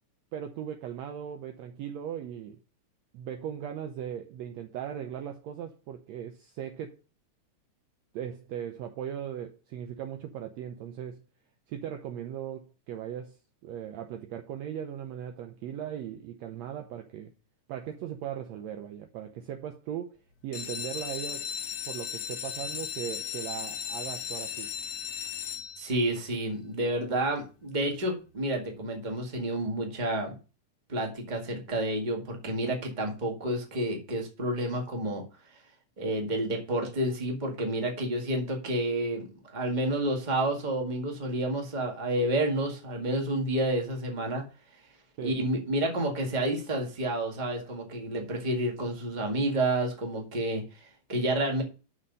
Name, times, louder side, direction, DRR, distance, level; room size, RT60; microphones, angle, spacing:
voice 1, 0.3-2.6 3.1-7.0 8.1-11.3 11.7-17.3 17.7-20.2 20.4-21.5 21.9-24.7 45.2-45.4, right 9 dB, 75° right, 1.7 m, -38 dB
sound 1, 20.4-26.1 26.8-27.2 27.6-27.7 28.0-28.1 28.5-28.6, left 9 dB, 70° left, 1.7 m, -36 dB
voice 2, 25.8-30.4 30.9-35.2 36.0-39.3 39.5-44.4 45.2-51.6, right 1 dB, 20° right, 1.5 m, -30 dB
6.9 x 6.1 x 5.4 m
omnidirectional pair, 3.6 m